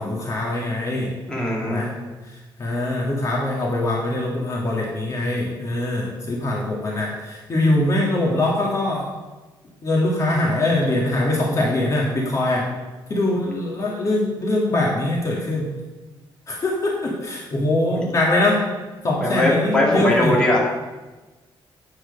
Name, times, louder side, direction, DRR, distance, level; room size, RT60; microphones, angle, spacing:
voice 1, 0.0-1.1 1.6-1.9 2.6-9.1 9.8-12.7 13.1-15.7 16.5-18.6 19.0-20.3, left 1 dB, 35° left, -3 dB, 1.9 m, -22 dB
voice 2, 1.3-1.9 17.9-18.1 19.2-20.6, left 1 dB, 10° left, -4 dB, 2.3 m, -20 dB
9.0 x 7.6 x 5.3 m, 1.2 s
cardioid pair, 150°, 9 cm